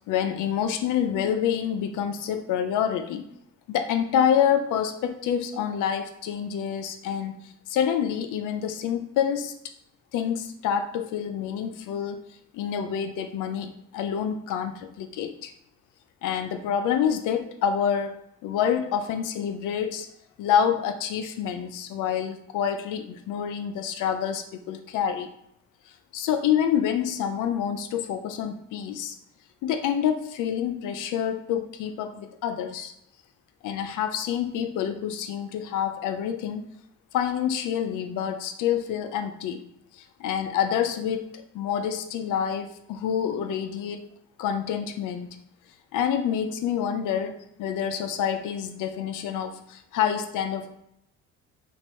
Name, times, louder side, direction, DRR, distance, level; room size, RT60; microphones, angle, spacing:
voice 1, 0.1-3.2 3.7-9.5 10.1-12.2 12.5-15.5 16.2-20.1 20.4-25.3 26.1-29.2 29.6-32.9 33.6-36.7 37.1-39.6 39.9-44.1 44.4-45.4 45.9-50.8, left 8 dB, 85° left, 8 dB, 0.5 m, -27 dB
3.0 x 2.6 x 4.5 m, 0.76 s
cardioid pair, 90°, 30 cm